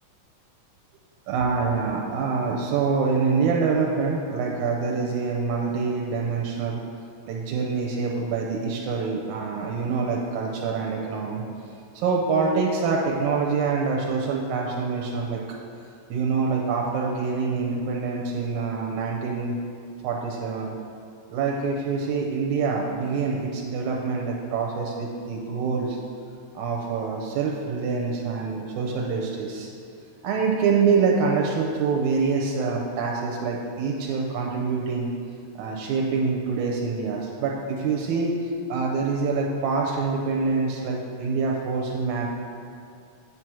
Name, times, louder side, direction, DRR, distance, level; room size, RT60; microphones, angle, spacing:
voice 1, 1.3-6.8 7.3-11.4 11.9-15.4 16.1-19.5 20.0-20.7 21.3-26.0 26.6-29.7 30.2-35.1 35.6-38.3 38.7-42.3, right 5 dB, 85° right, -1 dB, 2.2 m, -25 dB
8.7 x 4.7 x 6.1 m, 2.3 s
omnidirectional pair, 3.4 m